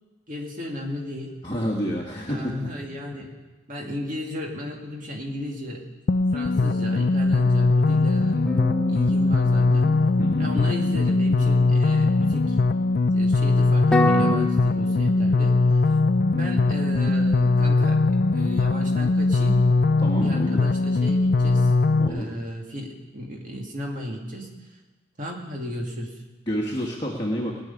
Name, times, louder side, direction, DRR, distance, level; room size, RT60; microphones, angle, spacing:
voice 1, 0.3-1.3 2.3-3.3 3.7-5.8 6.3-8.5 8.9-9.9 10.4-12.6 13.1-15.6 16.3-19.6 20.2-21.7 22.1-24.5 25.2-26.2, left 1 dB, 40° right, 0 dB, 2.2 m, -34 dB
voice 2, 1.4-2.5 10.2-10.5 20.0-20.6 22.0-22.3 26.5-27.6, equal, 20° left, -3 dB, 1.5 m, -29 dB
sound 1, 6.1-22.1, left 3 dB, 45° left, 0.4 m, -20 dB
sound 2, 8.4-12.6 13.9-14.4, left 1 dB, 5° left, 1.0 m, -28 dB
18.0 x 6.4 x 9.9 m, 1.2 s
head